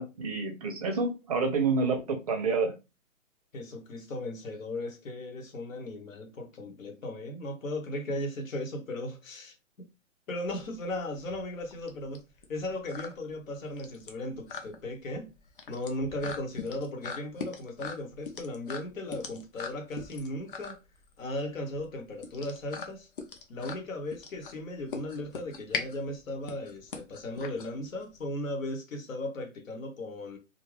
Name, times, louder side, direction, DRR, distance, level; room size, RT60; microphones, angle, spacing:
voice 1, 0.0-2.7, right 4 dB, 30° right, 0.5 m, -28 dB
voice 2, 3.5-9.9 10.3-12.2 12.5-15.3 15.7-20.8 21.2-23.1 23.5-30.4, left 1 dB, 75° left, 1.1 m, -37 dB
sound 1, 10.4-28.2, left 5 dB, 40° left, 0.6 m, -41 dB
2.5 x 2.3 x 3.2 m
hypercardioid pair, 150°, 40 cm